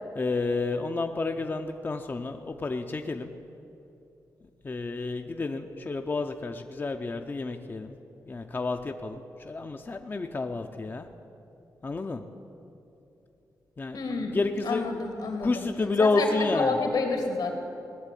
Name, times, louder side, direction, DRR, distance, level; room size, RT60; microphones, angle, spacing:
voice 1, 0.2-3.3 4.6-7.9 8.3-11.1 11.8-12.2 13.8-14.0 14.3-14.9 15.4-16.8, left 3 dB, 30° left, 5 dB, 0.6 m, -30 dB
voice 2, 13.9-14.4 14.6-15.6 16.0-17.5, left 3 dB, 85° left, 3 dB, 2.6 m, -29 dB
18.5 x 7.4 x 9.9 m, 2.8 s
wide cardioid pair, 100°, 7 cm